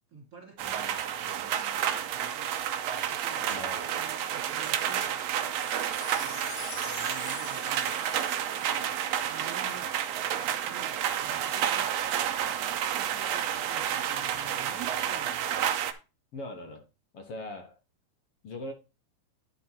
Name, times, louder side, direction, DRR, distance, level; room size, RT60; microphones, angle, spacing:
voice 1, 0.1-2.5 3.1-3.4 3.9-5.2 6.2-10.0 10.4-15.4, right 5 dB, 25° right, 2.9 m, -49 dB
sound 1, 0.6-15.9, right 10 dB, 75° right, 1.5 m, -30 dB
voice 2, 3.5-3.9 16.3-16.8 17.1-17.7 18.4-18.7, left 1 dB, 55° left, 1.8 m, -40 dB
Wind chime, 5.4-9.8 10.3-10.4, left 12 dB, 75° left, 1.9 m, -46 dB
11.0 x 5.2 x 4.4 m
omnidirectional pair, 4.1 m